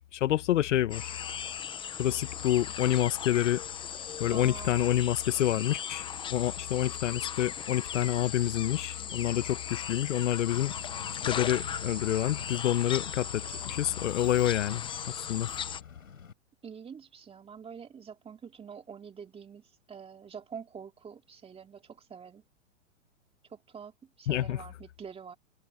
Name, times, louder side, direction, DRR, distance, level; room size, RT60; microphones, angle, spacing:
voice 1, 0.1-1.1 2.0-3.6 4.2-6.0 6.3-10.7 11.3-14.9 15.2-15.5 24.3-24.6, left 12 dB, 65° left, 1.5 m, -28 dB
sound 1, 0.9-15.8, left 8 dB, 15° left, 0.7 m, -38 dB
voice 2, 4.3-4.7 16.6-22.4 23.5-25.4, right 7 dB, 15° right, 2.3 m, -46 dB
Screech, 10.5-16.3, left 3 dB, 85° left, 5.1 m, -45 dB
hypercardioid pair, 120°, 39 cm